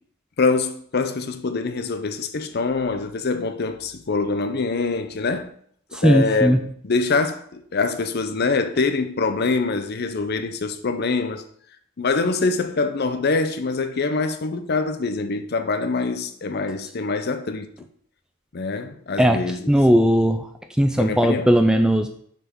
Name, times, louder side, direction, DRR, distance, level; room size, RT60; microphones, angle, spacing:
voice 1, 0.4-5.5 6.0-11.4 12.0-17.7 18.5-19.6 21.0-21.5, left 4 dB, 50° left, 0.6 m, -24 dB
voice 2, 5.9-6.6 19.2-19.4 19.7-20.5 20.8-22.1, equal, 5° right, 0.3 m, -17 dB
6.5 x 4.3 x 4.5 m
head